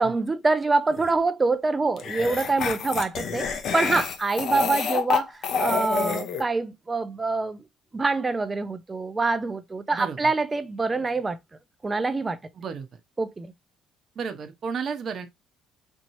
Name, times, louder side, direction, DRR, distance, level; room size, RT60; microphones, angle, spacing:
voice 1, 0.0-3.5 3.7-7.6 7.9-11.4 11.8-12.4 13.2-13.5, right 3 dB, 25° right, 0.7 m, -25 dB
sound 1, 0.9-1.1 2.0-6.4, left 6 dB, 60° left, 0.9 m, -28 dB
voice 2, 12.6-12.9 14.2-15.3, right 5 dB, 50° right, 1.0 m, -32 dB
4.5 x 3.0 x 2.7 m
supercardioid pair, 70°, 0 cm